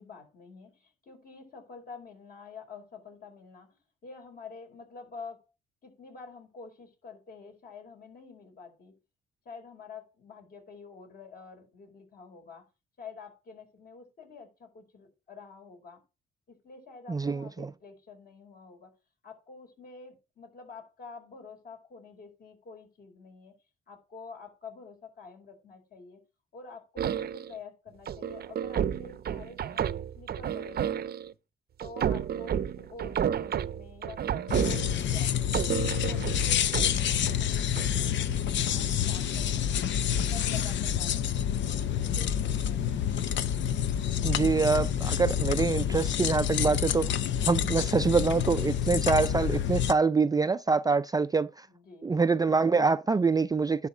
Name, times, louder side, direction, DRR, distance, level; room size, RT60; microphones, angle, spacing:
voice 1, 0.0-3.7 4.0-5.4 5.8-8.9 9.4-12.7 13.0-16.0 16.5-18.9 19.2-23.5 23.9-26.2 26.5-29.9 30.1-31.2 31.8-35.5 35.8-39.9 40.2-42.8 51.7-52.2, left 4 dB, 50° left, 5.1 m, -48 dB
voice 2, 17.1-17.7 44.2-51.7 52.0-53.9, right 4 dB, 20° right, 0.4 m, -25 dB
sound 1, 27.0-27.6 28.1-31.3 31.8-35.2 35.5-37.4 37.8-38.0, right 9 dB, 50° right, 0.7 m, -31 dB
sound 2, 34.5-49.9, left 9 dB, 65° left, 0.7 m, -28 dB
11.0 x 4.1 x 7.5 m
cardioid pair, 90°, 20 cm